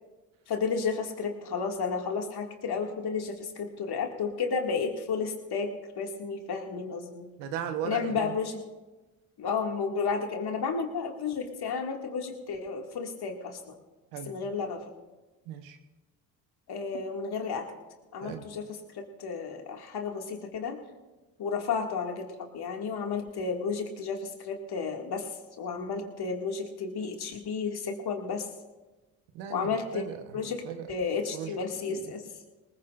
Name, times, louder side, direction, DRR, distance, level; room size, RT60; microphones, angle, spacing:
voice 1, 0.5-7.3 7.8-8.6 9.4-13.8 14.3-14.8 16.7-17.7 18.1-20.8 21.4-28.5 29.5-30.0 30.3-32.2, left 5 dB, 60° left, 2 dB, 2.2 m, -32 dB
voice 2, 7.4-8.3 14.1-14.3 15.5-15.8 18.2-18.5 29.3-30.4 30.6-30.9 31.3-31.6 31.9-32.0, right 8 dB, 85° right, 7 dB, 1.2 m, -37 dB
20.5 x 19.0 x 2.5 m, 1.2 s
hypercardioid pair, 55°, 44 cm